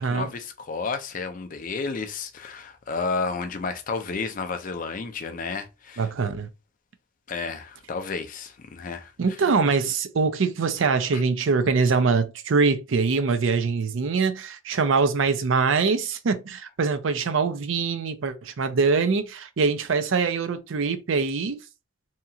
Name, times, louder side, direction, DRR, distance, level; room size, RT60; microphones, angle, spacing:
voice 1, 0.0-6.1 7.3-9.1 11.1-11.2, left 4 dB, 40° left, 0.4 m, -31 dB
voice 2, 6.0-6.5 9.2-21.6, right 4 dB, 65° right, 0.5 m, -23 dB
2.8 x 2.3 x 2.7 m
head